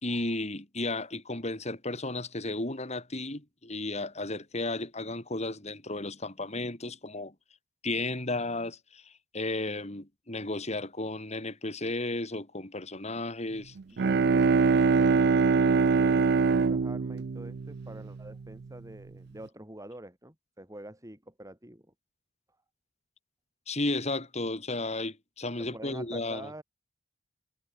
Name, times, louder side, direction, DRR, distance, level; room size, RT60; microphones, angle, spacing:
voice 1, 0.0-7.3 7.8-13.7 23.7-26.5, left 2 dB, 35° left, 3.9 m, -34 dB
Bowed string instrument, 13.8-18.5, right 5 dB, 55° right, 0.4 m, -24 dB
voice 2, 15.9-21.9 25.6-26.6, right 1 dB, 15° right, 6.9 m, -46 dB
head